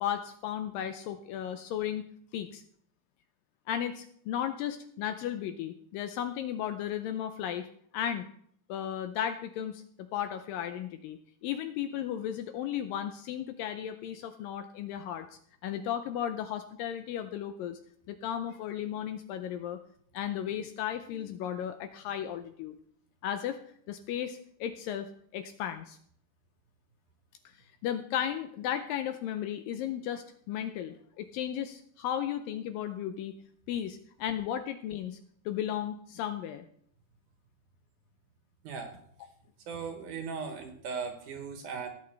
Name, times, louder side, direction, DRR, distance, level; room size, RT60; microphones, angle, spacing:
voice 1, 0.0-2.6 3.7-7.7 7.9-8.3 8.7-15.3 15.6-17.8 18.1-19.8 20.1-22.8 23.2-23.6 23.9-25.1 25.3-26.0 27.8-33.3 33.7-35.2 35.5-36.7, left 10 dB, 80° left, 8 dB, 2.1 m, -35 dB
voice 2, 38.6-39.0 39.7-41.9, right 5 dB, 65° right, 5 dB, 2.4 m, -38 dB
17.0 x 8.6 x 3.4 m, 0.64 s
omnidirectional pair, 4.5 m